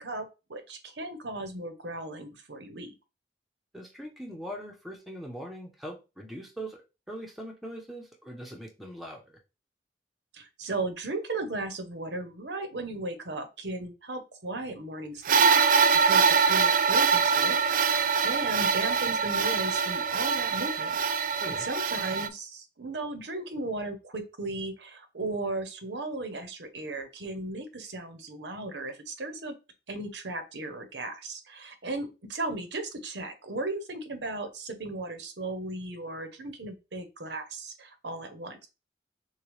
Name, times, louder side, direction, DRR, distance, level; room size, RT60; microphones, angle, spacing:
voice 1, 0.0-2.9 10.3-29.5 29.9-38.7, right 2 dB, 75° right, 7 dB, 0.9 m, -36 dB
voice 2, 3.7-6.8 7.1-9.4 21.4-21.7, equal, ahead, 1 dB, 0.8 m, -41 dB
sound 1, 15.3-22.3, right 6 dB, 45° right, 0.3 m, -24 dB
6.5 x 2.3 x 3.2 m, 0.28 s
head